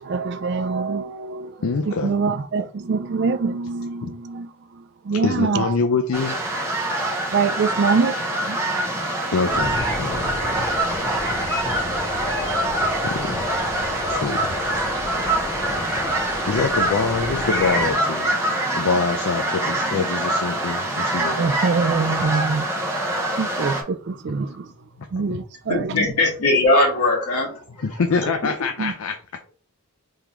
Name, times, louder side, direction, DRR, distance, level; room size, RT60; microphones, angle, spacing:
voice 1, 0.0-1.5 1.9-4.5 5.1-5.7 7.3-8.1 8.5-8.6 21.4-22.6 23.4-24.5 25.1-25.9 28.8-28.9, right 4 dB, 50° right, 0.3 m, -24 dB
voice 2, 1.6-2.2 4.0-4.1 5.2-6.4 9.3-10.3 12.8-13.4 14.1-14.5 16.4-18.3 18.7-21.5 25.0-25.4 27.8-29.2, left 4 dB, 70° left, 0.4 m, -25 dB
sound 1, 6.1-23.8, right 1 dB, 10° right, 0.8 m, -25 dB
sound 2, 9.5-17.9, left 2 dB, 20° left, 1.8 m, -31 dB
voice 3, 25.7-27.6, left 2 dB, 90° left, 1.7 m, -19 dB
3.6 x 3.4 x 3.0 m
head